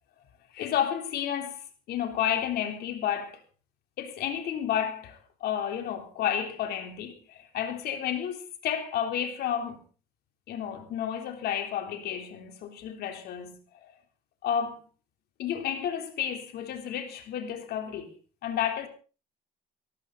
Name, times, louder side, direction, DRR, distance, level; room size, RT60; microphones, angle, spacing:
voice 1, 0.5-3.4 4.0-9.8 10.5-13.9 14.4-14.8 15.4-18.2 18.4-18.9, left 9 dB, 70° left, 3.4 m, -31 dB
19.0 x 14.0 x 4.0 m
cardioid pair, 110°, 17 cm